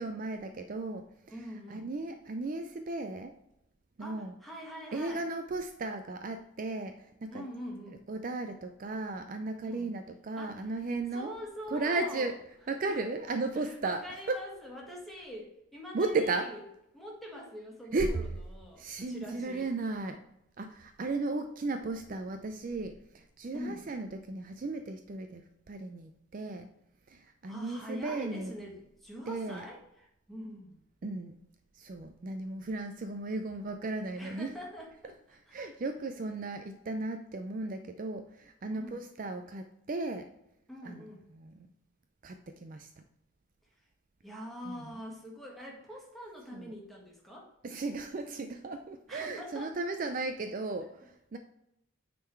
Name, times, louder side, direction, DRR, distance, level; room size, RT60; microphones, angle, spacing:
voice 1, 0.0-3.3 4.0-4.3 4.9-7.4 8.1-11.4 11.7-12.4 12.7-14.4 15.9-16.5 17.9-18.2 18.8-20.2 20.6-26.7 27.1-28.5 29.3-29.6 31.0-31.4 31.7-34.5 35.3-40.3 40.8-41.0 41.3-41.7 42.2-43.0 44.6-45.0 46.5-46.7 47.6-51.4, right 3 dB, 40° right, 7 dB, 0.4 m, -35 dB
voice 2, 1.3-1.9 4.0-5.2 7.3-8.0 9.6-9.9 10.4-10.6 11.1-12.3 12.9-13.0 13.5-16.6 16.9-19.7 23.5-23.8 27.4-30.8 34.2-35.1 35.6-35.7 38.7-39.0 40.7-41.2 44.2-47.5 49.1-49.8, equal, ahead, -2 dB, 1.6 m, -44 dB
9.3 x 3.8 x 4.5 m, 0.84 s
head